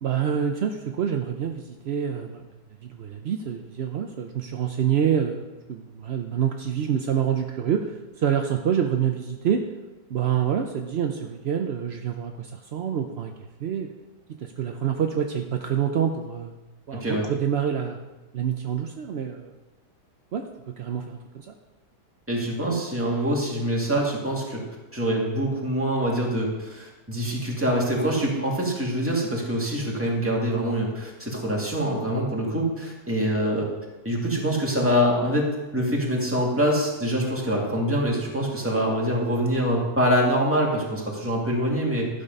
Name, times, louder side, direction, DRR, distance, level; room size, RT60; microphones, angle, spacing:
voice 1, 0.0-2.5 2.8-5.4 5.7-9.6 10.1-13.3 13.6-13.9 14.4-16.6 16.9-18.0 18.3-19.5 20.3-21.5, right 8 dB, 65° right, 4 dB, 0.6 m, -27 dB
voice 2, 22.3-24.6 24.9-33.7 34.0-35.5 35.7-42.1, equal, 5° right, -3 dB, 2.1 m, -25 dB
12.0 x 7.4 x 5.3 m, 1.1 s
omnidirectional pair, 1.9 m